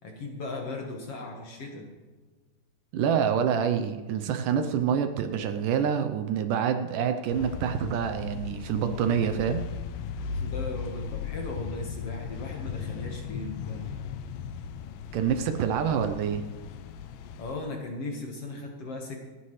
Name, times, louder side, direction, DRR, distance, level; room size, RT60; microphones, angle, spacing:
voice 1, 0.0-1.9 10.3-14.0 17.4-19.2, left 2 dB, 50° left, 1 dB, 2.1 m, -37 dB
voice 2, 2.9-9.7 15.1-16.4, right 8 dB, 75° right, 8 dB, 2.2 m, -27 dB
sound 1, 7.3-17.6, left 6 dB, 80° left, 2.3 m, -37 dB
29.0 x 9.8 x 3.2 m, 1.3 s
omnidirectional pair, 4.0 m